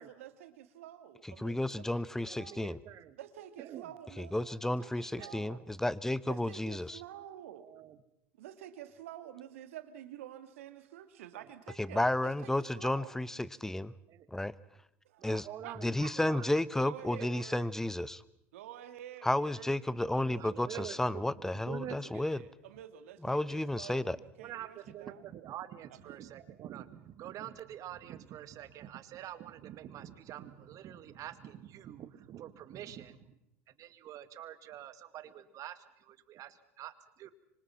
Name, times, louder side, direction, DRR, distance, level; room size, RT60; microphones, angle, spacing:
voice 1, 0.0-2.6 3.2-5.7 6.3-7.7 8.4-13.2 15.0-16.4 16.8-17.8 18.5-21.3 22.0-25.2 25.9-26.2, right 11 dB, 85° right, 10 dB, 2.1 m, -50 dB
voice 2, 1.4-2.8 4.2-7.0 11.8-13.9 14.3-14.5 15.2-15.5 15.8-18.2 19.2-22.4 23.2-24.2, left 1 dB, 5° left, 18 dB, 1.0 m, -32 dB
voice 3, 2.3-3.2 3.6-3.9 5.2-5.5 7.5-8.0 11.3-11.5 14.1-14.3 15.2-16.9 17.2-17.3 20.4-22.3 24.4-33.4 33.8-37.3, right 11 dB, 55° right, 12 dB, 2.0 m, -46 dB
26.0 x 25.0 x 5.8 m, 0.79 s
hypercardioid pair, 80°, 7 cm